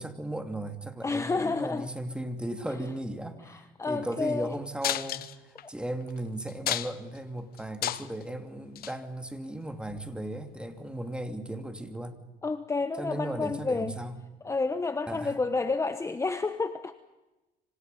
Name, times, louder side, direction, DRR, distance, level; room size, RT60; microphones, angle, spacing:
voice 1, 0.0-12.2 13.0-14.2 15.1-15.3, right 1 dB, 5° right, 7 dB, 2.8 m, -36 dB
voice 2, 1.0-1.9 3.4-4.5 12.4-14.0 14.4-16.9, left 3 dB, 15° left, 10 dB, 1.1 m, -30 dB
sound 1, 4.8-5.6 6.1-6.2 6.5-7.2 7.6-8.2 8.7-8.9 9.9-10.0, left 12 dB, 65° left, 1.1 m, -31 dB
26.5 x 26.0 x 5.5 m, 1.0 s
cardioid pair, 110°, 17 cm